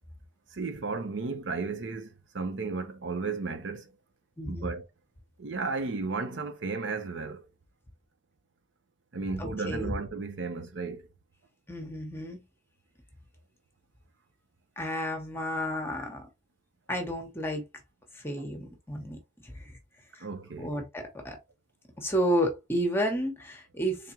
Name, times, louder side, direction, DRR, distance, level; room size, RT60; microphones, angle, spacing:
voice 1, 0.5-2.1 2.3-3.9 4.5-4.8 5.4-7.4 9.1-11.0 20.2-20.7, right 4 dB, 75° right, 0.7 m, -34 dB
voice 2, 4.4-4.7 9.4-9.9 11.7-12.4 14.8-16.3 16.9-17.6 18.1-19.7 20.1-20.3 20.6-21.4 22.0-24.1, equal, 15° left, 0.8 m, -31 dB
3.6 x 3.5 x 2.9 m
head